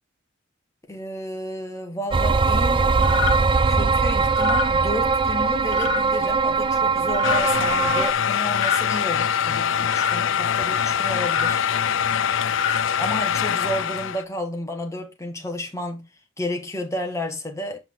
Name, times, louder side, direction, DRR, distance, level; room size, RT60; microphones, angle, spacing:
voice 1, 0.9-2.9 3.7-11.7 13.0-16.1 16.4-17.8, left 1 dB, 15° left, 1.8 m, -31 dB
sound 1, 2.1-8.1, right 4 dB, 25° right, 0.3 m, -21 dB
sound 2, 3.0-3.3 4.3-4.7 5.7-6.0 7.1-7.4 8.5-8.8 9.9-10.1 11.2-11.5 12.4-12.8, left 7 dB, 40° left, 2.0 m, -27 dB
sound 3, 7.2-14.2, left 8 dB, 65° left, 0.5 m, -23 dB
7.5 x 5.7 x 3.7 m
head